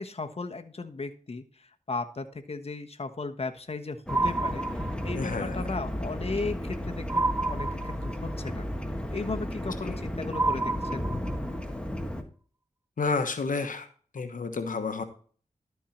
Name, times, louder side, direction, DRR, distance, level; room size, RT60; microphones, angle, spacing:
voice 1, 0.0-8.7 9.1-11.1, left 3 dB, 45° left, 7 dB, 1.2 m, -36 dB
sound 1, 4.1-12.2, equal, 5° left, 1.5 m, -34 dB
sound 2, 4.1-5.3 7.1-8.3 10.3-11.6, right 3 dB, 15° right, 0.4 m, -29 dB
voice 2, 5.2-5.6 9.8-10.0 13.0-13.9 14.1-15.0, left 4 dB, 75° left, 8 dB, 1.2 m, -30 dB
12.5 x 4.6 x 4.3 m, 0.43 s
cardioid pair, 45°, 14 cm